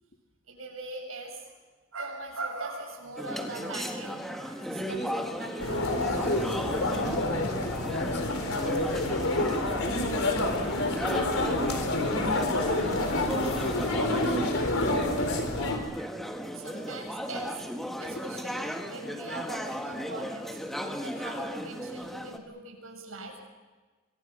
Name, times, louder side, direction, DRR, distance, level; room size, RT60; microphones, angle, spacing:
voice 1, 0.5-1.6 1.9-6.3 6.5-7.1 8.5-8.9 16.5-17.7 18.0-20.6 21.0-23.4, right 2 dB, 85° right, 2 dB, 7.2 m, -41 dB
sound 1, 3.2-22.4, equal, ahead, 1.7 m, -36 dB
sound 2, 5.6-15.8, left 2 dB, 85° left, 4.4 m, -28 dB
voice 2, 6.2-6.7 7.0-9.3 9.7-15.4, left 1 dB, 50° left, 4 dB, 2.5 m, -38 dB
26.0 x 23.5 x 6.3 m, 1.3 s
head